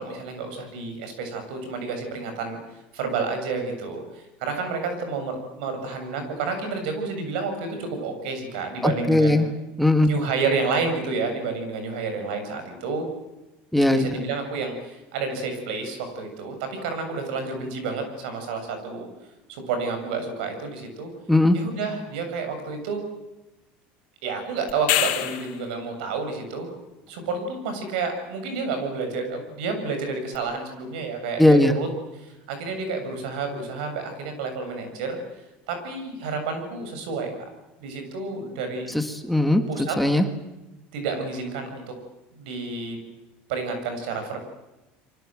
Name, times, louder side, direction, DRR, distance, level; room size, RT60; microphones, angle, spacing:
voice 1, 0.0-2.6 2.9-9.4 10.0-13.0 13.9-19.1 19.5-21.1 21.5-23.0 24.2-26.7 27.1-31.9 32.2-35.2 35.7-37.3 37.8-38.9 39.7-40.0 40.9-41.9 42.3-43.0 43.5-44.4, right 4 dB, 85° right, 6 dB, 7.4 m, -30 dB
voice 2, 8.8-9.5 9.8-10.1 13.7-14.1 21.3-21.6 31.4-31.8 38.9-40.3, left 1 dB, ahead, 6 dB, 1.9 m, -19 dB
sound 1, 24.7-25.7 30.3-30.4, left 15 dB, 75° left, 3.2 m, -25 dB
27.0 x 24.0 x 7.7 m, 1.0 s
supercardioid pair, 120°, 5 cm